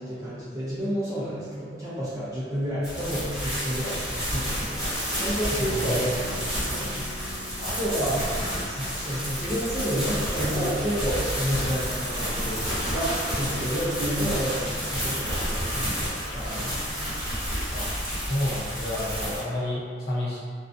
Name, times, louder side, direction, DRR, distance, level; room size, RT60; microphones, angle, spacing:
voice 1, 0.0-7.1 7.8-8.3 8.7-17.1, equal, 20° right, -12 dB, 0.4 m, -30 dB
sound 1, 2.8-19.4, equal, 5° right, 1.1 m, -30 dB
voice 2, 5.5-6.2 7.6-7.7 8.1-8.9 17.7-17.9 18.3-20.4, left 1 dB, 60° left, -7 dB, 0.7 m, -31 dB
Harp, 5.5-15.2 15.4-15.5 15.7-16.0, left 1 dB, 90° right, 0.7 m, -48 dB
2.5 x 2.2 x 2.5 m, 2.1 s
head